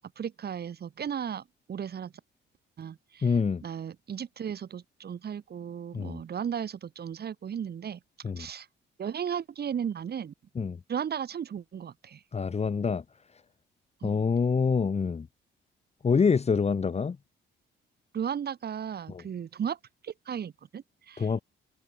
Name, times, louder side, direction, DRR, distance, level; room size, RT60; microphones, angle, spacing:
voice 1, 0.0-1.4 1.7-2.1 2.8-3.3 3.6-8.0 8.4-8.7 9.0-10.3 10.9-12.2 14.0-14.2 18.1-19.8 20.0-21.3, right 8 dB, 55° right, 3.1 m, -35 dB
voice 2, 3.2-3.6 5.9-6.2 8.2-8.5 10.5-10.8 12.3-13.0 14.0-15.3 16.0-17.2 19.1-19.2 21.2-21.4, left 5 dB, 30° left, 1.4 m, -26 dB
cardioid pair, 90°, 20 cm